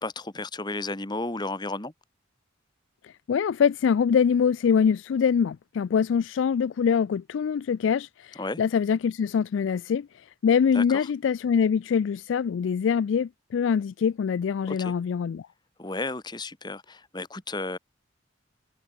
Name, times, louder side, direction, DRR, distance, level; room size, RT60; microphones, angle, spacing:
voice 1, 0.0-1.9 8.4-8.6 10.7-11.0 14.7-14.9 15.8-17.8, left 2 dB, 20° left, 1.6 m, -33 dB
voice 2, 3.3-10.1 10.4-15.5, left 7 dB, 75° left, 0.3 m, -24 dB
head